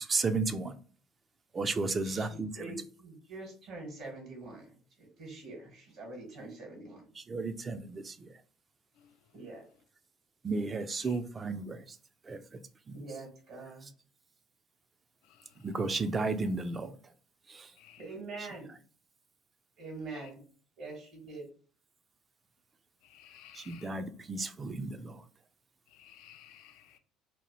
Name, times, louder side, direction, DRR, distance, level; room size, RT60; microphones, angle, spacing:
voice 1, 0.1-0.7 1.5-2.5 7.3-8.3 10.4-11.8 12.3-12.4 12.9-13.0 15.6-16.9 23.6-25.2, right 3 dB, 30° right, 0.4 m, -33 dB
voice 2, 2.0-7.1 9.3-9.6 12.9-13.9 18.0-18.7 19.8-20.4 20.8-21.5, right 3 dB, 70° right, 1.4 m, -44 dB
voice 3, 23.0-23.9 25.9-27.0, left 11 dB, 75° left, 0.3 m, -55 dB
2.8 x 2.2 x 3.0 m
supercardioid pair, 85°, 0 cm